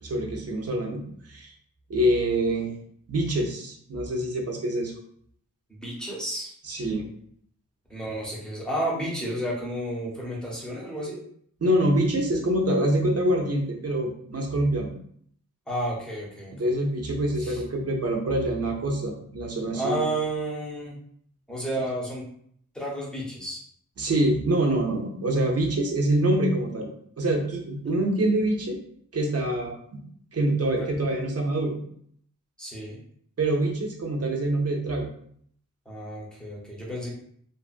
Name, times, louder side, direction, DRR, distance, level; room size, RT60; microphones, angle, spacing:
voice 1, 0.0-1.5 1.9-2.7 3.1-4.9 6.6-7.1 11.6-14.9 16.6-20.1 24.0-26.9 27.2-28.8 29.1-30.0 30.3-31.8 33.4-35.1, right 1 dB, 50° right, 1 dB, 0.7 m, -25 dB
voice 2, 5.7-6.5 7.9-11.2 15.7-16.7 17.4-17.6 19.7-21.0 21.5-22.3 22.7-23.6 30.8-30.9 32.6-33.0 35.9-37.1, right 1 dB, ahead, -5 dB, 0.9 m, -31 dB
2.6 x 2.4 x 2.5 m, 0.64 s
wide cardioid pair, 90°, 32 cm